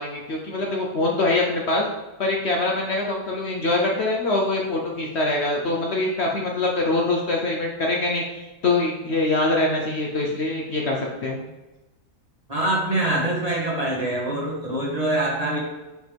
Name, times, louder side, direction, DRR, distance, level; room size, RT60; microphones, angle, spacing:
voice 1, 0.0-1.9 2.2-11.4, left 2 dB, 55° left, -1 dB, 0.9 m, -24 dB
voice 2, 12.5-15.6, right 1 dB, 25° right, -4 dB, 1.5 m, -24 dB
6.1 x 5.3 x 3.4 m, 1.1 s
omnidirectional pair, 1.5 m